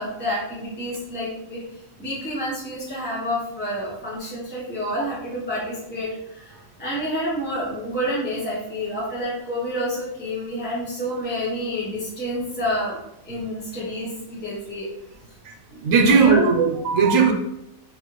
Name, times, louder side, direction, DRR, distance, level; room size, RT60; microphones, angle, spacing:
voice 1, 0.0-1.6 2.0-13.0 13.2-14.9 16.0-16.4, equal, 10° left, -8 dB, 0.7 m, -29 dB
voice 2, 15.4-17.3, right 5 dB, 70° right, 3 dB, 1.1 m, -18 dB
4.2 x 3.1 x 3.1 m, 0.84 s
omnidirectional pair, 1.5 m